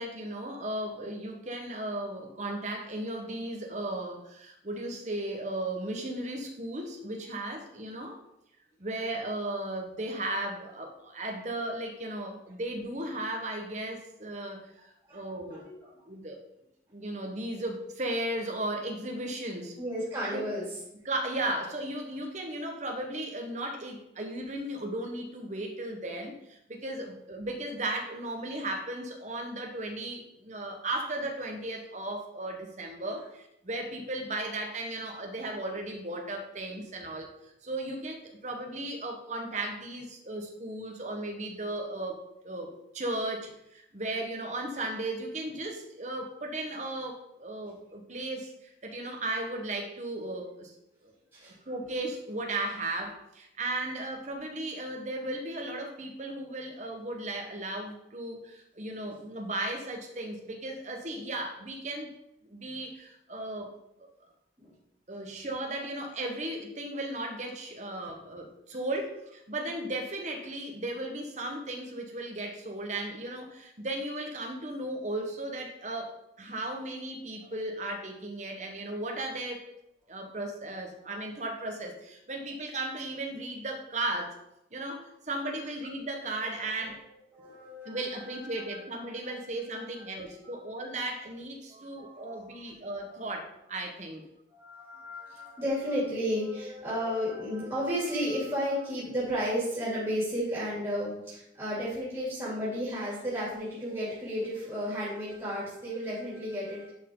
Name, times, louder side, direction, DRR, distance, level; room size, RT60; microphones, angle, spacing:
voice 1, 0.0-8.2 8.8-15.7 16.1-16.4 16.9-19.8 20.3-20.4 21.0-37.3 37.6-50.7 51.0-51.1 51.4-62.1 62.4-63.7 64.0-64.1 65.1-79.7 80.1-84.4 84.7-87.0 87.8-94.2, right 1 dB, 40° right, 3 dB, 1.3 m, -36 dB
voice 2, 15.1-16.0 19.8-20.6 51.3-51.5 64.6-64.7 77.4-77.5 86.6-86.7 87.3-88.8 89.3-89.4 89.7-90.0 90.4-90.5 91.7-92.4 93.0-93.2 94.5-106.9, equal, 20° right, -8 dB, 3.1 m, -33 dB
11.0 x 4.6 x 3.9 m, 0.82 s
head